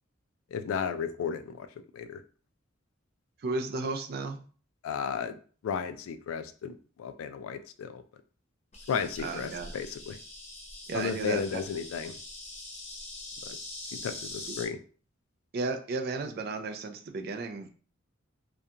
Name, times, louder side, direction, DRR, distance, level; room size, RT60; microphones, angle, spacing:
voice 1, 0.5-1.7 1.9-2.2 4.8-5.4 5.6-8.0 8.9-10.2 10.9-12.1 13.5-13.6 14.0-14.8, left 6 dB, 80° left, 10 dB, 0.3 m, -34 dB
voice 2, 3.4-4.5 9.2-9.7 10.9-11.6 14.5-14.6 15.5-17.7, right 3 dB, 50° right, 5 dB, 0.3 m, -34 dB
Insect, 8.7-14.7, left 2 dB, 30° left, 0.6 m, -43 dB
2.4 x 2.2 x 2.7 m, 0.41 s
head